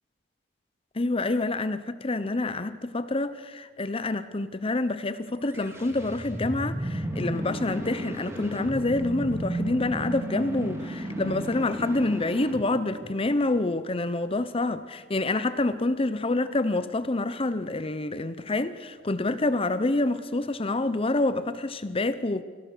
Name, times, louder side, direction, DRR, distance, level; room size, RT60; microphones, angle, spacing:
voice 1, 1.0-22.4, left 2 dB, 30° left, 0.8 m, -27 dB
sound 1, 5.4-13.6, right 1 dB, 15° right, 2.3 m, -34 dB
24.5 x 17.0 x 6.8 m
head